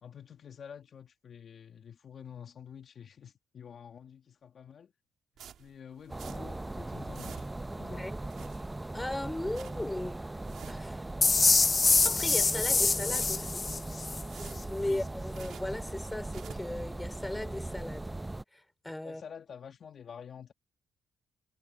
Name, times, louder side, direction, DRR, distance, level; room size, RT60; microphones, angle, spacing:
voice 1, 0.0-4.9 5.6-7.5 7.8-8.1 14.8-15.0 19.0-20.5, left 7 dB, 55° left, 1.8 m, -48 dB
sound 1, 5.4-6.7 6.9-7.7 8.1-8.9 9.3-9.9 10.3-11.0 11.4-12.4 12.9-13.7 14.1-15.8 16.1-16.8, right 9 dB, 70° right, 1.6 m, -51 dB
sound 2, 6.1-18.4, right 2 dB, 15° right, 0.6 m, -39 dB
voice 2, 8.9-10.2 10.7-11.1 12.0-13.7 14.7-18.0 18.5-19.2, left 1 dB, 10° left, 3.7 m, -37 dB
sound 3, 11.2-14.2, left 4 dB, 30° left, 0.5 m, -25 dB
cardioid pair, 90°, 0 cm